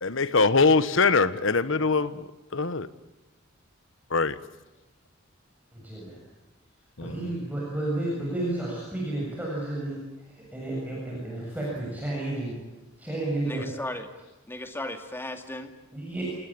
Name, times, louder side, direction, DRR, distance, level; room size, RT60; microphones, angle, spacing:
voice 1, 0.0-2.2 2.5-2.9 4.1-4.4 7.0-7.3, left 4 dB, 65° left, 14 dB, 1.3 m, -23 dB
voice 2, 5.7-6.2 7.0-10.0 10.5-12.6 13.0-13.7 15.9-16.2, right 1 dB, 10° right, -4 dB, 7.2 m, -31 dB
voice 3, 13.5-14.1 14.5-15.7, left 1 dB, 10° left, 6 dB, 2.3 m, -36 dB
28.0 x 19.0 x 8.7 m, 1.1 s
head